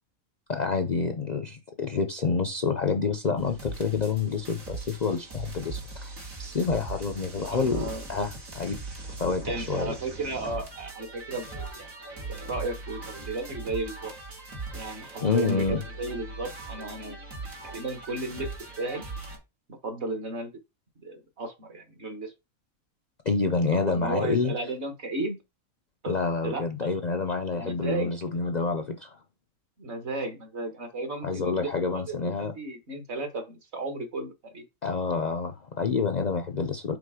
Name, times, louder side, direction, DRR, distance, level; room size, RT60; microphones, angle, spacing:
voice 1, 0.5-6.1 6.4-8.8 9.2-9.9 15.2-15.8 23.3-24.5 26.1-29.2 31.2-32.5 34.8-37.0, left 4 dB, 45° left, 0.5 m, -28 dB
sound 1, 3.4-19.4, right 3 dB, 70° right, 2.2 m, -40 dB
voice 2, 7.4-8.0 9.4-11.9 12.3-14.1 14.7-17.2 17.6-18.5 18.8-19.0 19.8-20.5 21.0-22.3 23.7-25.4 26.0-26.1 26.4-26.9 27.6-28.1 29.8-34.6, right 2 dB, 50° right, 1.5 m, -34 dB
5.2 x 4.0 x 4.8 m
omnidirectional pair, 1.4 m